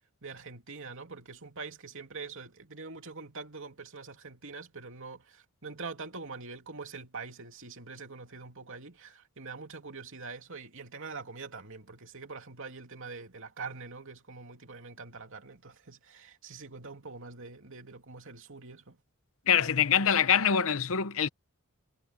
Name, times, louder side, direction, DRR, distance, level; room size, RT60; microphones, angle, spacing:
voice 1, 0.2-19.0, right 4 dB, 60° right, 3.0 m, -44 dB
voice 2, 19.5-21.3, left 8 dB, 65° left, 0.9 m, -24 dB
head